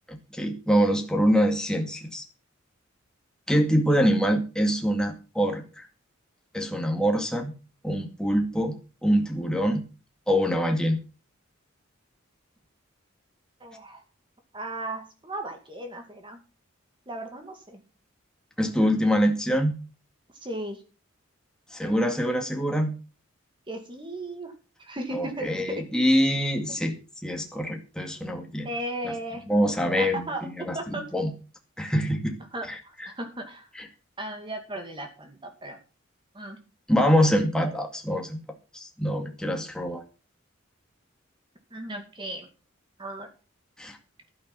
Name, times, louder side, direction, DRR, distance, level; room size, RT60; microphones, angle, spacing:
voice 1, 0.1-2.2 3.5-5.9 6.5-7.5 7.8-8.7 9.0-9.8 10.3-11.0 18.6-19.8 21.7-23.0 25.1-27.0 27.2-28.7 29.0-29.1 29.5-30.8 31.1-31.3 31.8-32.3 32.7-33.1 33.8-33.9 36.9-38.4 38.7-40.0 43.8-44.0, equal, 5° left, 3 dB, 2.1 m, -24 dB
voice 2, 13.6-14.0 14.5-16.4 17.1-17.8 20.3-20.8 23.7-24.5 24.8-25.9 28.6-29.4 30.0-30.4 30.7-31.0 32.5-33.7 34.2-35.8 36.3-36.6 41.7-42.5 43.0-43.3, right 1 dB, 25° right, 5 dB, 2.2 m, -36 dB
12.0 x 10.5 x 5.5 m, 0.33 s
head